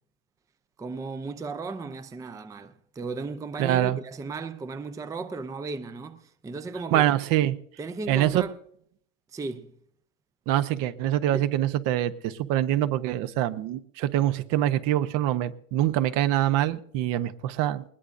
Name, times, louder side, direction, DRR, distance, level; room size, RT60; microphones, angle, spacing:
voice 1, 0.8-7.1 7.8-8.5 9.3-9.7 11.3-11.5, right 3 dB, 10° right, 0.5 m, -35 dB
voice 2, 3.6-4.0 6.9-7.6 8.1-8.4 10.5-17.8, right 13 dB, 50° right, 0.9 m, -24 dB
20.0 x 19.5 x 2.6 m
supercardioid pair, 110°, 41 cm